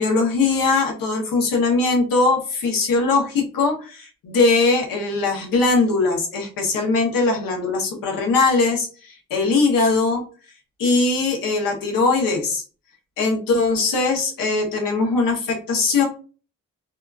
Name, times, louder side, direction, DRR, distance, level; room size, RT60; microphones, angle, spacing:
voice 1, 0.0-10.2 10.8-12.6 13.2-16.1, left 3 dB, 80° left, 2 dB, 0.9 m, -20 dB
2.8 x 2.3 x 2.3 m, 0.36 s
supercardioid pair, 55°, 34 cm